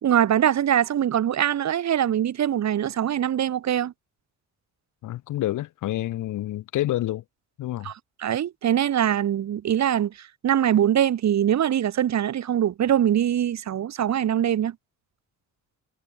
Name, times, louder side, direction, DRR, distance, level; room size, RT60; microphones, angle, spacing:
voice 1, 0.0-3.9 7.8-7.9 8.2-14.7, right 10 dB, 65° right, 2.9 m, -23 dB
voice 2, 5.0-7.2 7.6-7.9, left 14 dB, 85° left, 4.7 m, -28 dB
cardioid pair, 90°, 30 cm